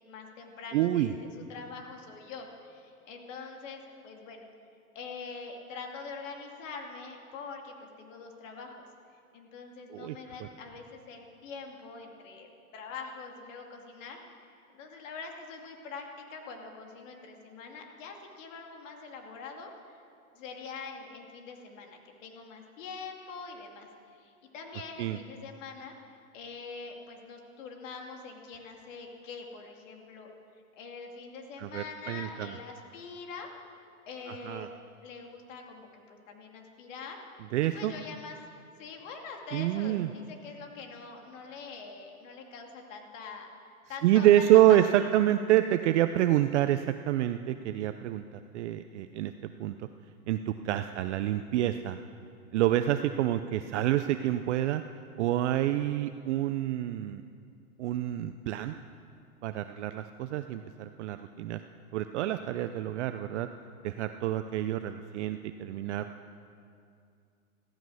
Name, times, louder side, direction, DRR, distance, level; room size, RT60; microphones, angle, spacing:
voice 1, 0.1-4.5 4.9-8.9 9.3-14.4 14.7-20.0 20.3-25.9 26.3-30.3 30.8-34.7 35.0-37.5 37.7-38.4 38.8-45.1 50.6-51.1, left 4 dB, 55° left, 2 dB, 2.7 m, -44 dB
voice 2, 0.7-1.1 9.9-10.2 25.0-25.2 31.6-32.5 34.3-34.7 37.5-37.9 39.5-40.1 44.0-49.9 50.3-52.0 52.5-54.8 55.2-57.2 57.8-58.7 59.4-61.6 61.9-63.5 63.8-66.1, right 13 dB, 50° right, 9 dB, 0.6 m, -27 dB
15.0 x 14.0 x 6.4 m, 2.4 s
hypercardioid pair, 135°, 44 cm